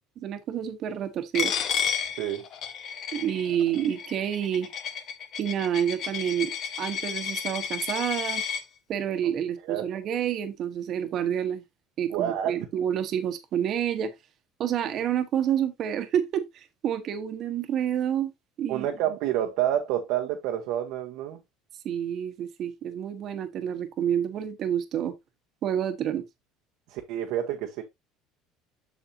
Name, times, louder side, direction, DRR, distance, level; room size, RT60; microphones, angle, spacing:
voice 1, 0.2-1.5 3.1-4.7 5.4-6.5 6.8-8.4 8.9-11.6 12.0-14.1 14.6-18.3 18.6-18.9 21.8-25.1 25.6-26.2, right 9 dB, 50° right, 1.2 m, -28 dB
Coin (dropping), 1.4-8.6, left 7 dB, 50° left, 1.2 m, -32 dB
voice 2, 12.1-12.7 18.7-21.4 26.9-27.8, right 11 dB, 75° right, 1.1 m, -28 dB
7.2 x 6.4 x 2.8 m
cardioid pair, 120°, 0 cm